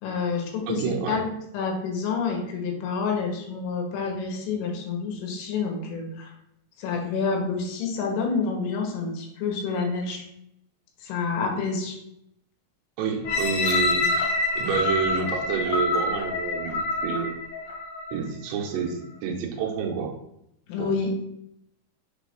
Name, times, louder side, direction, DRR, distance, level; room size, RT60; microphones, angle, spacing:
voice 1, 0.0-6.3 6.8-10.2 11.0-12.0 20.7-21.1, left 5 dB, 85° left, 0 dB, 3.5 m, -28 dB
voice 2, 0.7-1.2 13.0-14.1 14.6-17.3 18.1-20.1 20.8-20.9, right 6 dB, 90° right, 0 dB, 3.1 m, -28 dB
sound 1, 13.2-18.2 18.8-18.9, left 3 dB, 55° left, 1.9 m, -26 dB
7.3 x 2.6 x 5.2 m, 0.79 s
omnidirectional pair, 5.0 m